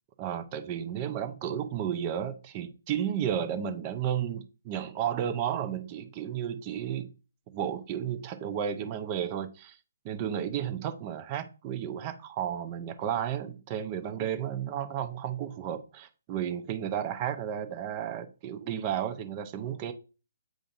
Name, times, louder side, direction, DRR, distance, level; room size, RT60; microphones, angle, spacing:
voice 1, 0.2-7.1 7.5-9.8 10.0-19.9, right 9 dB, 30° right, 0.6 m, -33 dB
7.7 x 5.0 x 2.6 m
figure-of-eight pair, 135°, 0 cm